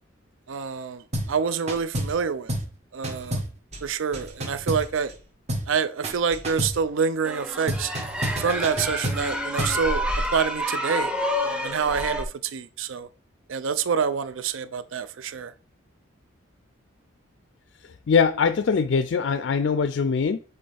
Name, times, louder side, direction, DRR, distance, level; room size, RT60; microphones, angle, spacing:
voice 1, 0.5-2.5 2.9-3.4 3.8-5.1 5.7-7.9 8.4-10.0 10.3-11.1 11.4-13.1 13.5-15.5, right 6 dB, 75° right, 0.5 m, -27 dB
sound 1, 1.1-1.4 1.7-2.2 2.5-2.7 3.0-5.2 5.5-5.7 6.0-6.8 7.7-9.8, equal, 30° right, 1.2 m, -30 dB
sound 2, 7.2-12.2, equal, 5° right, 0.7 m, -28 dB
voice 2, 18.1-20.4, left 5 dB, 60° left, 0.3 m, -22 dB
7.6 x 3.9 x 3.4 m
head